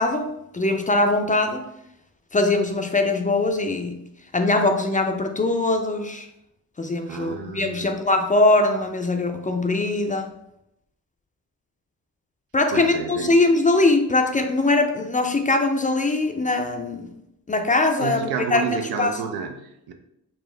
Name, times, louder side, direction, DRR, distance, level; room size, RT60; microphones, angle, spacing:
voice 1, 0.0-1.6 2.3-4.0 4.3-6.3 6.8-10.3 12.5-17.1 17.5-19.1, left 2 dB, 20° left, 5 dB, 0.4 m, -21 dB
voice 2, 7.1-7.9 12.7-13.4 18.0-19.9, right 6 dB, 80° right, 5 dB, 0.6 m, -30 dB
4.4 x 2.5 x 3.2 m, 0.83 s
cardioid pair, 70°, 37 cm